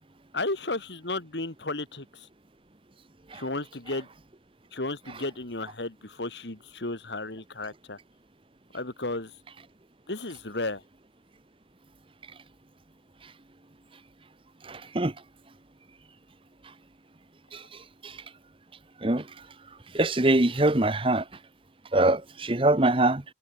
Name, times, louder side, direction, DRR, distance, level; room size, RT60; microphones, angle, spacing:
voice 1, 0.3-2.3 3.3-4.1 4.7-8.0 8.7-9.3 10.1-10.8, left 2 dB, 80° left, 2.5 m, -33 dB
voice 2, 14.6-15.1 17.5-17.6 18.0-18.2 19.0-19.3 19.9-21.2 21.9-23.2, right 2 dB, 30° right, 1.1 m, -23 dB
head